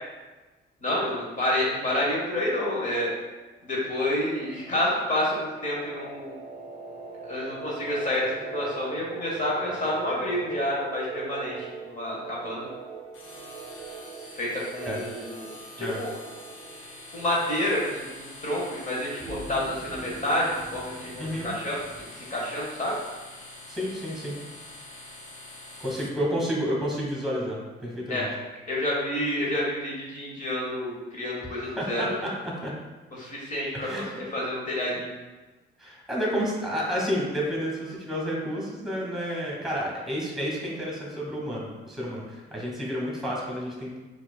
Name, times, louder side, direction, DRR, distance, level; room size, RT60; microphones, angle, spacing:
voice 1, 0.8-3.1 3.6-6.3 7.2-12.7 14.4-15.5 15.8-16.1 17.1-21.8 22.1-22.9 28.1-28.3 28.7-32.1 33.1-34.0 34.3-35.1, left 1 dB, 40° left, -5 dB, 0.8 m, -29 dB
sound 1, 3.6-18.2, right 5 dB, 70° right, 0.6 m, -41 dB
sound 2, 13.1-26.1, left 2 dB, 75° left, 0.6 m, -45 dB
sound 3, 19.2-22.0, right 1 dB, 25° right, 0.7 m, -43 dB
voice 2, 21.2-21.5 23.7-24.3 25.8-28.3 31.5-32.7 33.7-34.2 35.8-44.0, equal, ahead, -3 dB, 1.3 m, -30 dB
4.4 x 2.4 x 2.2 m, 1.2 s
cardioid pair, 90°, 20 cm